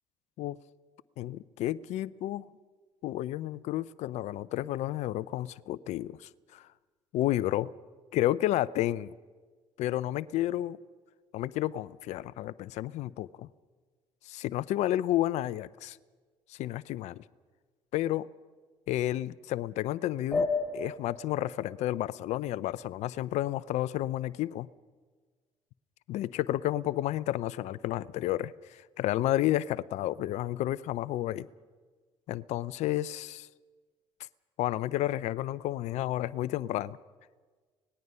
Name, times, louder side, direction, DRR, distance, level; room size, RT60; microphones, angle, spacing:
voice 1, 1.2-2.5 3.0-6.7 7.1-7.7 8.1-9.1 9.8-10.8 11.3-13.5 14.2-16.0 16.5-17.2 17.9-18.3 18.9-20.5 20.7-24.7 26.1-31.5 32.3-33.5 34.6-37.0, left 14 dB, 70° left, 0.6 m, -31 dB
sound 1, 20.3-23.3, left 3 dB, 10° left, 6.2 m, -34 dB
25.0 x 19.5 x 5.6 m
hypercardioid pair, 60°, 12 cm